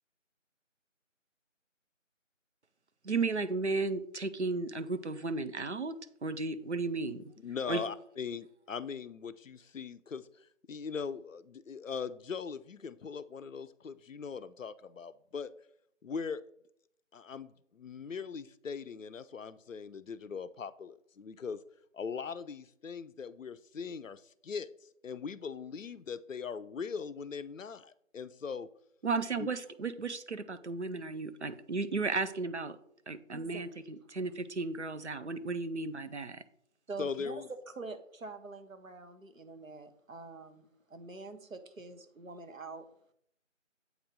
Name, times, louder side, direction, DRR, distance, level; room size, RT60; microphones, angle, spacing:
voice 1, 3.0-6.0 6.2-7.2 7.7-7.8 29.0-32.8 33.1-36.4, right 3 dB, 60° right, 10 dB, 0.5 m, -34 dB
voice 2, 7.0-15.5 16.0-16.4 17.1-21.6 21.9-24.7 25.0-28.7 29.4-29.5 37.0-37.5, left 6 dB, 80° left, 14 dB, 0.5 m, -40 dB
voice 3, 33.3-33.8 36.9-42.9, right 3 dB, 90° right, 8 dB, 1.0 m, -45 dB
8.0 x 3.1 x 5.1 m, 0.71 s
figure-of-eight pair, 180°, 39 cm